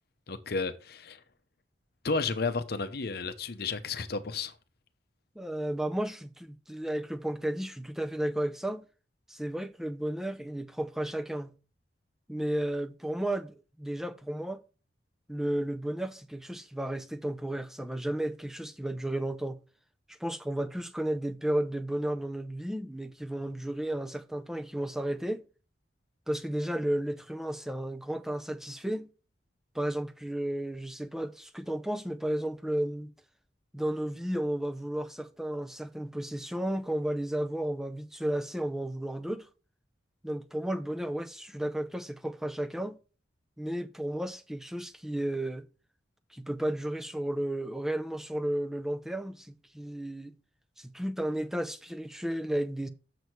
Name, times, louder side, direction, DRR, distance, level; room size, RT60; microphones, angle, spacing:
voice 1, 0.3-1.2 2.0-4.5, left 4 dB, 60° left, 0.8 m, -32 dB
voice 2, 5.4-8.8 9.3-11.6 12.3-14.6 15.3-19.6 20.2-25.4 26.3-29.1 29.7-33.1 33.7-39.5 40.2-43.0 43.6-45.7 46.3-50.4 50.8-52.9, right 1 dB, ahead, 0.5 m, -33 dB
6.8 x 6.2 x 4.6 m
head